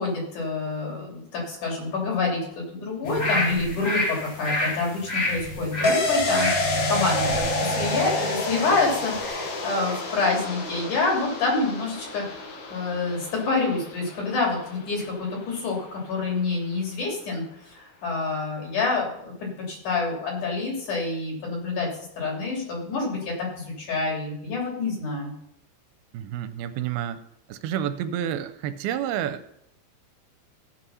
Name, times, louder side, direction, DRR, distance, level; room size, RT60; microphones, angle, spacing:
voice 1, 0.0-7.5 7.8-15.8 16.1-17.4 17.7-21.9 22.2-25.3, left 3 dB, 55° left, -2 dB, 4.4 m, -27 dB
sound 1, 3.0-9.5 9.9-10.0, equal, 30° left, 2.1 m, -30 dB
sound 2, 5.8-15.2 15.5-15.6, left 2 dB, 80° left, 1.0 m, -29 dB
voice 2, 26.1-27.2 27.5-29.4, right 10 dB, 85° right, 10 dB, 2.6 m, -29 dB
16.5 x 5.5 x 5.6 m, 0.75 s
omnidirectional pair, 4.5 m